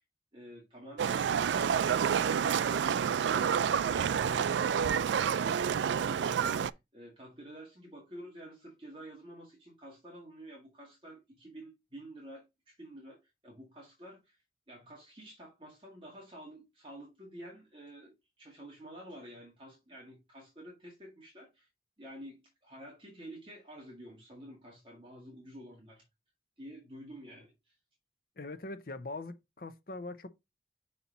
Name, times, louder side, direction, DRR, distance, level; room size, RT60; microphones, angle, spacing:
voice 1, 0.3-5.1 5.4-14.4 14.7-18.1 18.4-21.7 22.0-26.0 26.6-27.7, right 1 dB, 30° right, 1.9 m, -50 dB
Livestock farm animals working animals, 1.0-6.7, right 7 dB, 85° right, 0.3 m, -29 dB
voice 2, 28.4-30.3, left 2 dB, 55° left, 0.7 m, -42 dB
5.7 x 4.3 x 4.0 m
head